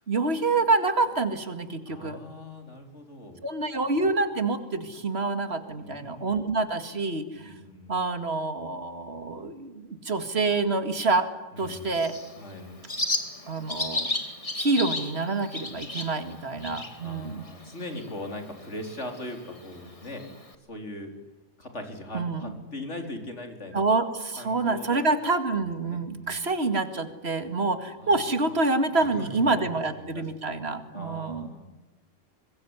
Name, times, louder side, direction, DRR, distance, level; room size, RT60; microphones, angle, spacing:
voice 1, 0.1-2.2 3.4-7.5 7.9-11.3 11.6-12.1 13.5-14.2 14.5-17.4 22.1-22.5 23.7-31.5, right 3 dB, 50° right, 9 dB, 2.4 m, -27 dB
voice 2, 1.9-3.4 5.8-6.4 7.3-8.1 11.5-12.0 12.4-12.8 16.5-20.3 20.7-21.1 21.6-23.9 24.4-25.0 25.5-26.4 28.0-28.1 29.0-29.7 30.0-30.5 30.9-31.8, left 1 dB, 60° left, 5 dB, 4.3 m, -40 dB
Bird, 11.6-20.5, left 2 dB, 25° left, 2.3 m, -35 dB
25.0 x 21.5 x 9.7 m, 1.1 s
omnidirectional pair, 1.4 m